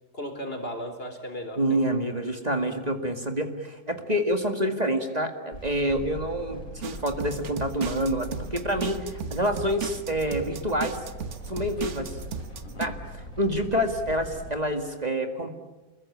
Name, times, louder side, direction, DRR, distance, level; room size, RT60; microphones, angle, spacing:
voice 1, 0.1-1.8 2.2-2.3 12.6-12.9, equal, 40° left, 6 dB, 4.0 m, -36 dB
voice 2, 1.6-11.0 11.5-12.2 12.8-15.5, equal, 30° right, 5 dB, 2.1 m, -27 dB
sound 1, 5.5-14.6, equal, 80° left, 6.6 m, -40 dB
sound 2, 6.8-12.9, right 7 dB, 55° right, 1.4 m, -36 dB
29.0 x 21.5 x 8.7 m, 1.1 s
omnidirectional pair, 1.5 m